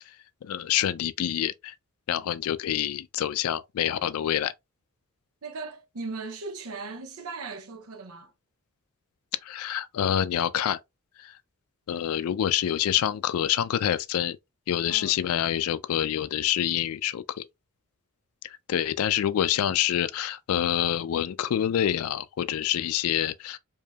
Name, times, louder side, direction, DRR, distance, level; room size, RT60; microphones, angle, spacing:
voice 1, 0.4-1.7 2.1-4.5 9.4-10.8 11.2-11.4 11.9-14.4 14.7-17.5 18.4-23.6, left 10 dB, 80° left, 0.3 m, -27 dB
voice 2, 5.4-8.3 14.9-15.2, right 3 dB, 85° right, 0.7 m, -38 dB
4.7 x 2.7 x 2.3 m
head